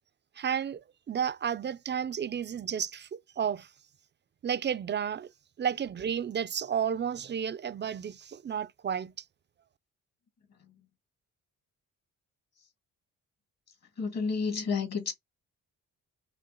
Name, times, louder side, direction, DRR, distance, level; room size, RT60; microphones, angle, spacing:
voice 1, 0.4-3.1 3.4-3.7 4.4-5.3 5.6-9.1, right 8 dB, 35° right, 0.5 m, -32 dB
voice 2, 14.0-15.1, left 5 dB, 50° left, 2.2 m, -30 dB
5.4 x 2.4 x 3.8 m
cardioid pair, 75°, 33 cm